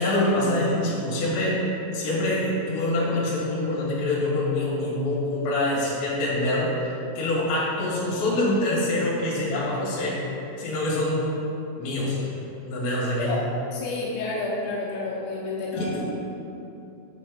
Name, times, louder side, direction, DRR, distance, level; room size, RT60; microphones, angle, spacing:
voice 1, 0.0-1.7 1.9-10.2 10.6-11.3 11.8-12.3 12.6-13.4 15.7-16.0, left 1 dB, 65° left, -6 dB, 3.6 m, -25 dB
voice 2, 13.7-16.0, left 3 dB, 90° left, -6 dB, 3.3 m, -30 dB
8.7 x 4.2 x 3.8 m, 2.8 s
omnidirectional pair, 5.8 m